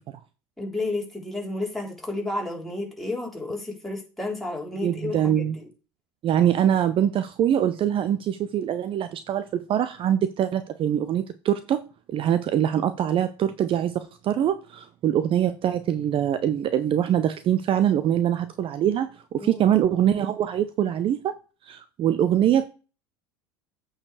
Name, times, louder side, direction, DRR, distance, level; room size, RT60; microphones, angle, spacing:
voice 1, 0.6-5.7 19.4-19.7, left 2 dB, ahead, -2 dB, 3.8 m, -31 dB
voice 2, 4.8-5.6 6.2-11.8 12.1-21.4 21.6-22.7, right 10 dB, 40° right, 12 dB, 0.7 m, -23 dB
8.6 x 4.8 x 4.8 m, 0.33 s
hypercardioid pair, 85°, 14 cm